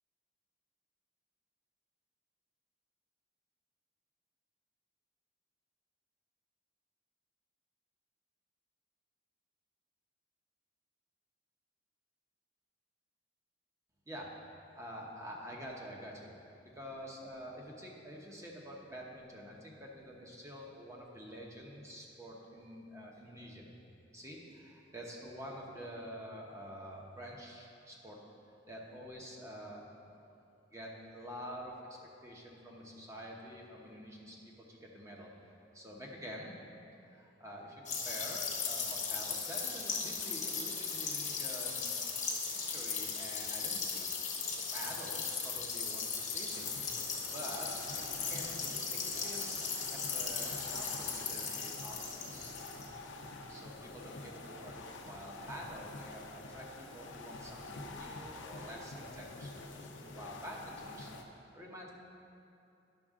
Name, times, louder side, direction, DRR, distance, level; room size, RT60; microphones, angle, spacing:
voice 1, 14.1-14.4 14.7-16.3 16.6-23.6 24.1-28.3 28.7-29.9 30.7-31.9 32.2-35.3 35.7-41.9 42.5-44.1 44.5-46.6 47.1-52.5 53.5-59.5 59.8-61.9, equal, 15° right, -2 dB, 1.0 m, -48 dB
sound 1, 37.9-52.9, left 5 dB, 40° left, 1.1 m, -37 dB
sound 2, 46.5-61.2, left 2 dB, 75° left, 0.7 m, -47 dB
10.5 x 6.1 x 3.7 m, 2.6 s
head